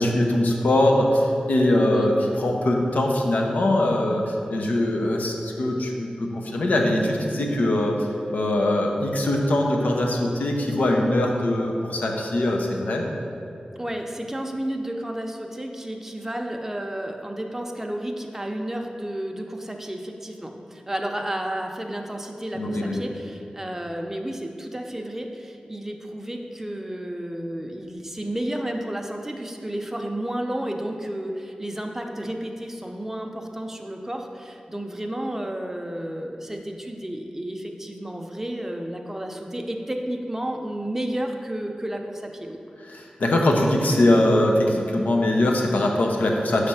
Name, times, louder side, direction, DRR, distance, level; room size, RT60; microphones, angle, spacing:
voice 1, 0.0-7.9 8.3-13.0 22.6-23.0 42.9-46.7, left 1 dB, 80° left, 1 dB, 0.8 m, -22 dB
voice 2, 13.8-42.6, right 1 dB, 15° right, 2 dB, 0.6 m, -32 dB
6.2 x 3.3 x 5.6 m, 2.7 s
cardioid pair, 55°, 3 cm